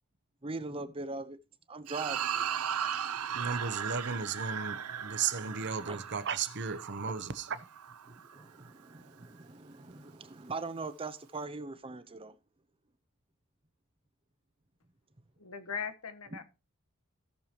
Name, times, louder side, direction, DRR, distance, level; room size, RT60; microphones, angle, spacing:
voice 1, 0.4-1.4 1.7-2.2 5.9-6.0 7.0-7.1 8.3-12.3 16.3-16.4, right 3 dB, 25° right, 0.7 m, -40 dB
sound 1, 1.9-8.4, right 8 dB, 90° right, 0.7 m, -37 dB
voice 2, 3.3-7.6, right 6 dB, 50° right, 0.9 m, -35 dB
voice 3, 15.4-16.4, left 6 dB, 85° left, 1.2 m, -39 dB
17.5 x 6.7 x 2.9 m
head